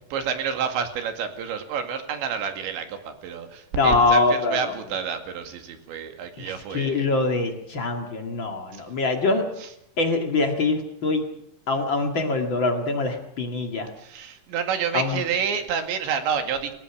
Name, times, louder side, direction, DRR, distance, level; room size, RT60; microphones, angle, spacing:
voice 1, 0.1-7.1 8.7-8.8 9.6-9.7 14.0-16.7, right 7 dB, 70° right, 6 dB, 4.2 m, -29 dB
voice 2, 3.7-4.6 6.4-9.5 10.0-11.2 11.7-13.9 14.9-15.2, left 3 dB, 45° left, 4 dB, 1.5 m, -23 dB
29.5 x 15.5 x 6.1 m, 0.76 s
omnidirectional pair, 5.5 m